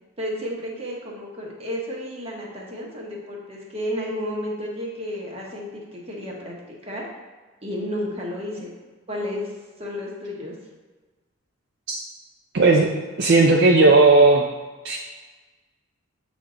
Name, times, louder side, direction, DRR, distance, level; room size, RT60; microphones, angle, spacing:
voice 1, 0.2-7.1 7.6-8.7 9.1-10.6, equal, 30° right, -2 dB, 1.1 m, -32 dB
voice 2, 12.5-12.9 13.2-14.4 14.8-15.0, right 3 dB, 55° right, 0 dB, 0.5 m, -15 dB
7.5 x 3.6 x 3.8 m, 1.3 s
head